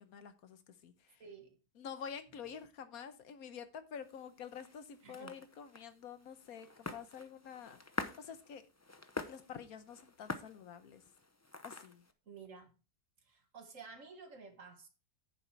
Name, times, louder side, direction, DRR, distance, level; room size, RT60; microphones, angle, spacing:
voice 1, 0.0-1.2 1.8-8.6 9.3-11.0 11.6-12.0, left 7 dB, 75° left, 1.4 m, -48 dB
voice 2, 1.2-1.6 5.0-5.4 12.3-12.7 13.2-14.9, right 5 dB, 60° right, 1.9 m, -52 dB
sound 1, 4.0-12.1, left 2 dB, 20° left, 0.4 m, -47 dB
9.1 x 7.1 x 4.5 m
omnidirectional pair, 1.6 m